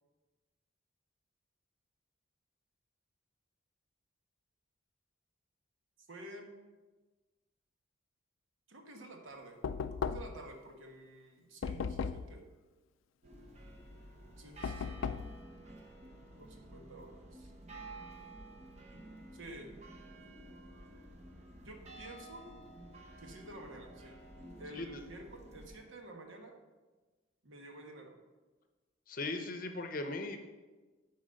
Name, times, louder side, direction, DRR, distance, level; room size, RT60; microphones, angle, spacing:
voice 1, 6.1-6.5 8.7-12.4 14.4-15.2 16.4-17.5 19.3-19.8 21.6-22.4 23.2-24.2 24.6-26.6 27.4-28.1, right 1 dB, 75° right, 3 dB, 1.2 m, -50 dB
Knock, 9.6-10.5 11.6-12.4 14.6-15.4, left 6 dB, 75° left, 0.3 m, -36 dB
sound 1, 13.2-25.8, right 1 dB, 35° right, 1.0 m, -52 dB
voice 2, 29.1-30.4, left 2 dB, 45° left, 6 dB, 0.7 m, -38 dB
7.8 x 4.2 x 6.4 m, 1.2 s
head